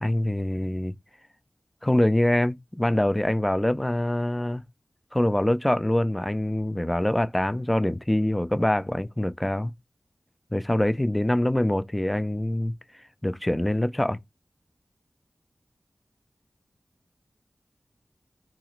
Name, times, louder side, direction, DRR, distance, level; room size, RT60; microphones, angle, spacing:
voice 1, 0.0-0.9 1.8-4.6 5.1-9.7 10.5-12.7 13.2-14.2, left 1 dB, 15° left, 0.3 m, -24 dB
2.8 x 2.4 x 3.0 m
cardioid pair, 50°, 0 cm